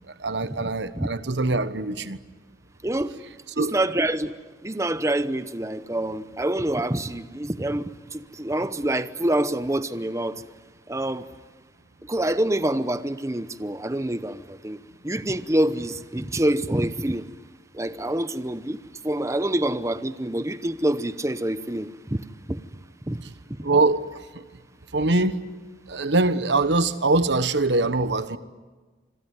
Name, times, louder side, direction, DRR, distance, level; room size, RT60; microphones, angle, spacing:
voice 1, 0.1-2.2 3.5-3.7 23.6-24.0 24.3-24.4 24.9-25.4 25.9-28.4, right 2 dB, 90° right, 1.3 m, -23 dB
voice 2, 2.8-3.1 3.6-4.3 4.6-10.3 10.9-11.2 12.1-14.8 15.0-17.3 17.7-18.8 19.0-22.6 23.1-23.2, right 1 dB, 15° right, 0.8 m, -26 dB
27.0 x 22.5 x 9.5 m
head